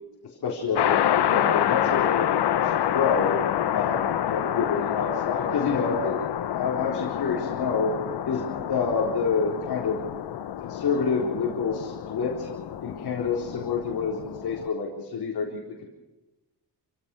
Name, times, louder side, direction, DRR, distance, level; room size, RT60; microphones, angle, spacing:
voice 1, 0.4-3.4 3.7-6.2 6.4-7.9 8.3-10.1 10.6-12.5 12.8-15.9, left 5 dB, 65° left, -1 dB, 4.4 m, -28 dB
sound 1, 0.8-14.7, left 10 dB, 80° left, 1.3 m, -27 dB
28.0 x 17.0 x 6.4 m, 1.1 s
wide cardioid pair, 155°, 39 cm